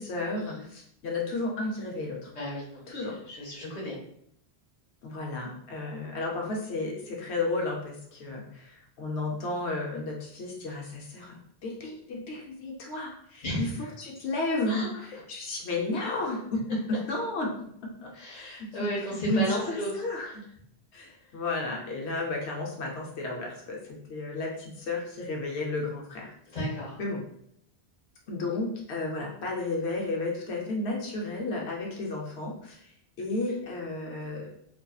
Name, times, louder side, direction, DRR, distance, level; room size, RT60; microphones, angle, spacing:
voice 1, 0.0-2.3 2.9-3.2 5.0-13.7 14.0-20.4 20.9-26.3 27.0-27.2 28.3-34.5, left 2 dB, 85° left, -1 dB, 0.9 m, -33 dB
voice 2, 2.3-4.0 13.4-13.9 14.7-15.1 16.9-17.0 18.1-20.3 26.5-27.0, equal, 40° left, -4 dB, 0.8 m, -34 dB
2.5 x 2.3 x 2.3 m, 0.69 s
omnidirectional pair, 1.1 m